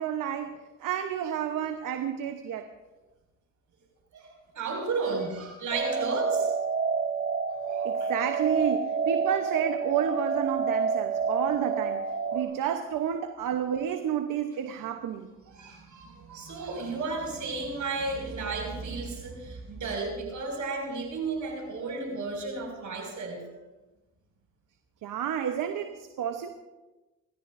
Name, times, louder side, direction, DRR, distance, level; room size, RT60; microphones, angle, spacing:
voice 1, 0.0-2.7 7.8-12.0 12.3-15.3 25.0-26.5, right 9 dB, 85° right, 7 dB, 1.1 m, -30 dB
voice 2, 4.5-6.5 7.5-8.1 12.3-12.5 15.5-23.4, right 3 dB, 70° right, 1 dB, 6.1 m, -33 dB
sound 1, 5.7-12.4, right 5 dB, 40° right, 2.4 m, -28 dB
29.5 x 14.0 x 2.7 m, 1.1 s
cardioid pair, 65°, 32 cm